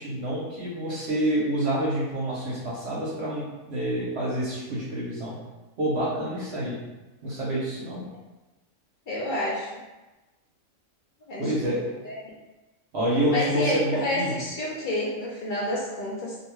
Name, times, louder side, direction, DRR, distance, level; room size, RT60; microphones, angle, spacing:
voice 1, 0.0-5.4 5.8-6.8 7.2-8.1 11.4-11.8 12.9-14.4, right 1 dB, 60° right, -6 dB, 0.8 m, -27 dB
voice 2, 9.1-9.7 11.3-11.5 12.0-12.2 13.3-16.4, left 1 dB, 60° left, -6 dB, 0.5 m, -29 dB
2.5 x 2.3 x 3.0 m, 1.1 s
omnidirectional pair, 1.4 m